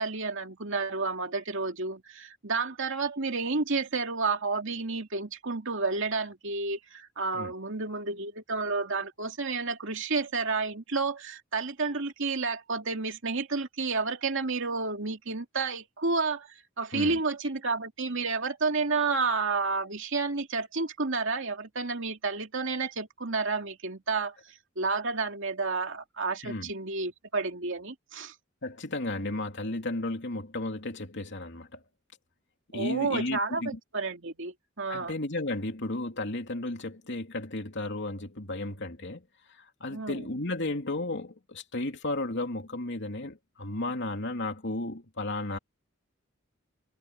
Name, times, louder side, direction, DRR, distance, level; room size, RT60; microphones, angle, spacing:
voice 1, 0.0-16.5 16.8-24.4 24.8-28.3 32.7-35.1 39.9-40.2, right 4 dB, 65° right, 2.6 m, -30 dB
voice 2, 28.6-31.8 32.7-33.8 34.9-45.6, left 2 dB, 60° left, 3.0 m, -34 dB
head